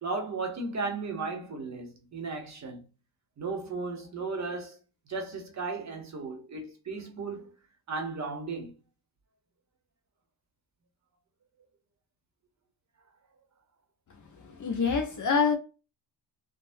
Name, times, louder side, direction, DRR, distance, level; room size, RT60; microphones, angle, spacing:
voice 1, 0.0-2.8 3.4-4.8 5.1-7.5 7.9-8.7, right 3 dB, 35° right, 0.8 m, -35 dB
voice 2, 14.4-15.5, left 5 dB, 40° left, 0.5 m, -26 dB
3.4 x 2.0 x 2.5 m
cardioid pair, 135°, 49 cm